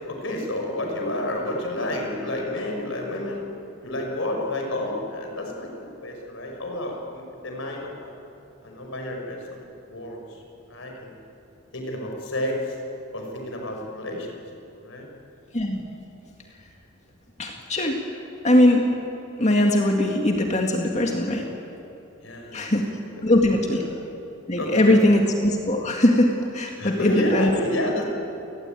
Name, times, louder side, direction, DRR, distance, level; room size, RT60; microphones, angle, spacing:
voice 1, 0.1-3.5 3.8-8.1 8.6-10.4 10.7-11.1 11.7-12.8 13.1-14.4 14.8-15.1 22.2-22.8 23.1-23.2 23.7-23.8 24.6-25.2 26.8-28.0, left 1 dB, 65° left, 1 dB, 5.9 m, -30 dB
voice 2, 17.4-18.0 18.4-18.9 19.4-21.5 22.5-22.9 23.2-23.8 24.5-27.5, left 1 dB, 35° left, 1 dB, 2.1 m, -20 dB
28.5 x 20.0 x 9.2 m, 2.9 s
head